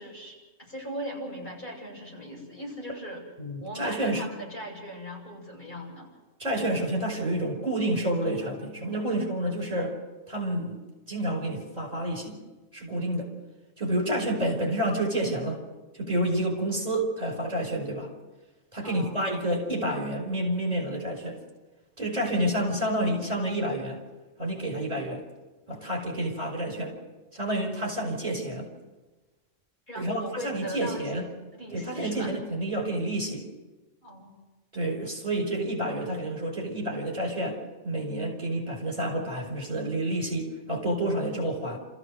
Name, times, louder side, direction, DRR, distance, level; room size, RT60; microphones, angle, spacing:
voice 1, 0.0-3.2 3.6-6.1 18.8-19.2 29.9-32.4 34.0-34.4, equal, 40° left, -4 dB, 8.2 m, -39 dB
voice 2, 3.4-4.2 6.4-9.9 10.3-10.8 11.1-12.4 12.7-13.3 13.8-15.6 16.0-18.1 18.7-21.4 22.0-24.0 24.4-25.2 25.7-26.9 27.3-28.7 30.0-31.3 31.7-33.4 34.7-37.6 37.8-41.8, right 1 dB, 35° right, 1 dB, 5.5 m, -29 dB
28.5 x 15.0 x 6.6 m, 1.2 s
omnidirectional pair, 1.3 m